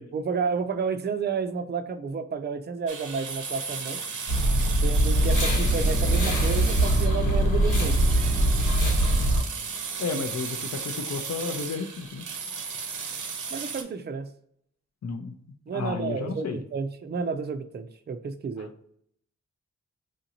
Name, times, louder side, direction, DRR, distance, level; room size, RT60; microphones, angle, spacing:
voice 1, 0.1-4.0 4.8-8.0 10.1-10.3 13.5-14.3 15.7-18.7, right 5 dB, 35° right, 8 dB, 0.4 m, -31 dB
sound 1, 2.9-13.8, right 5 dB, 85° right, 0.6 m, -35 dB
sound 2, 4.3-9.4, right 1 dB, 80° left, 1.3 m, -22 dB
Bowed string instrument, 5.1-10.0, left 2 dB, 10° left, 0.9 m, -39 dB
voice 2, 10.0-12.2 15.0-15.3 15.7-16.6 18.6-18.7, left 4 dB, 60° left, 7 dB, 0.5 m, -32 dB
4.9 x 2.6 x 2.8 m, 0.68 s
wide cardioid pair, 110°, 30 cm